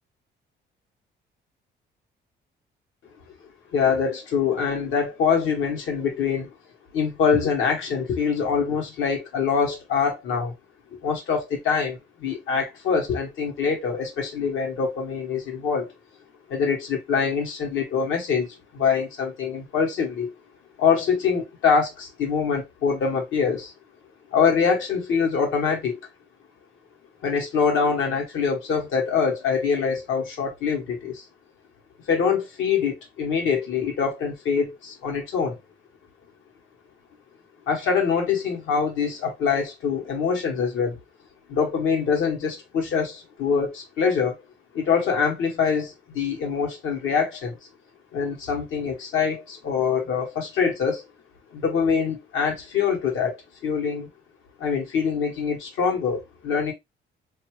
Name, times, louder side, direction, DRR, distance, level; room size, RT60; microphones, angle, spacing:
voice 1, 3.7-6.5 6.9-10.5 11.0-15.9 16.5-18.5 18.7-20.3 20.8-23.7 24.3-26.0 27.2-31.2 32.1-35.6 37.7-41.0 41.5-44.3 44.7-47.6 48.1-51.0 51.5-54.1 54.6-56.7, left 6 dB, 80° left, 1.4 m, -24 dB
2.8 x 2.3 x 3.2 m
cardioid pair, 90°, 20 cm